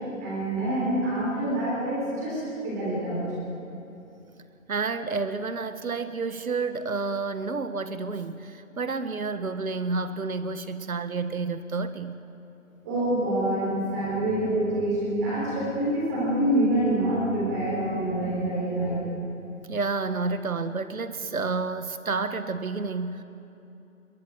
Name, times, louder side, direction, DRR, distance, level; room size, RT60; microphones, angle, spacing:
voice 1, 0.2-3.2 12.8-19.0, right 1 dB, 10° right, -7 dB, 3.4 m, -26 dB
voice 2, 4.7-12.2 19.7-23.2, right 4 dB, 80° right, 11 dB, 1.6 m, -30 dB
21.0 x 14.5 x 8.9 m, 2.8 s
hypercardioid pair, 175°, 42 cm